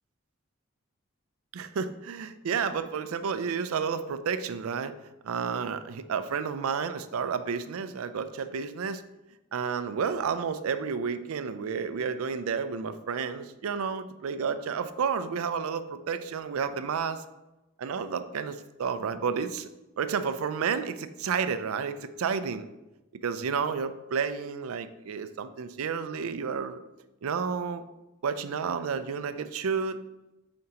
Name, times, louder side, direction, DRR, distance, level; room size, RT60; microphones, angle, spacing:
voice 1, 1.5-4.9 5.2-9.0 9.5-17.2 17.8-19.7 20.0-22.7 23.2-26.8 27.2-27.8 28.2-30.0, right 6 dB, 85° right, 12 dB, 0.4 m, -31 dB
7.4 x 4.4 x 2.9 m, 0.99 s
head